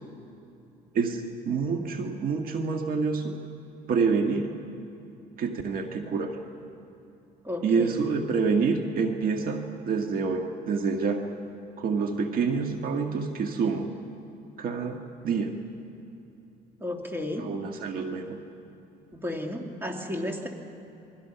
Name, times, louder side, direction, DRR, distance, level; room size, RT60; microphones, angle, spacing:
voice 1, 0.9-3.3 3.9-4.5 5.4-6.3 7.6-11.2 11.8-13.9 14.6-15.5 17.4-18.4, right 5 dB, 60° right, 4 dB, 1.6 m, -27 dB
voice 2, 7.4-7.9 16.8-17.5 19.1-20.5, left 1 dB, 15° right, 2 dB, 2.6 m, -33 dB
28.5 x 22.5 x 5.7 m, 2.8 s
cardioid pair, 110°, 17 cm